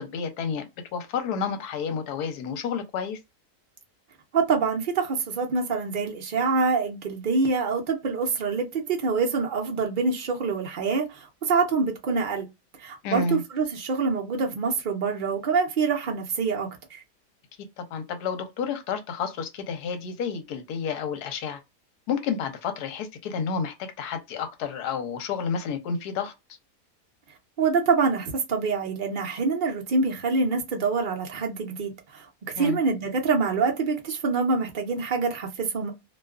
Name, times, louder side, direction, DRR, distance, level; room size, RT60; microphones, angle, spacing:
voice 1, 0.0-3.2 13.0-13.4 17.8-21.6 22.1-26.3 32.6-32.8, left 6 dB, 85° left, 1.2 m, -30 dB
voice 2, 4.3-12.5 12.8-17.0 27.6-32.3 32.6-35.9, right 4 dB, 80° right, 0.4 m, -25 dB
2.5 x 2.3 x 2.3 m
omnidirectional pair, 1.7 m